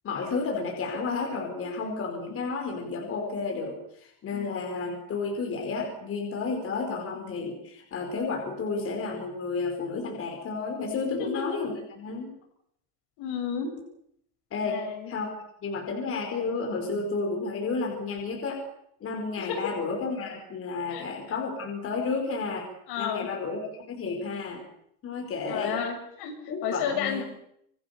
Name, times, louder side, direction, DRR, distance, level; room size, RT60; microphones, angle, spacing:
voice 1, 0.0-12.3 14.5-18.6 19.0-22.7 23.0-23.6 23.9-24.6 25.0-25.9 26.5-27.2, left 4 dB, 30° left, 2 dB, 5.0 m, -32 dB
voice 2, 11.1-11.7 13.2-13.7 14.6-15.1 19.5-19.7 20.9-21.0 22.9-23.3 25.5-26.4 26.6-27.2, left 7 dB, 55° left, 5 dB, 7.1 m, -32 dB
26.5 x 24.5 x 6.9 m, 0.73 s
cardioid pair, 165°, 46 cm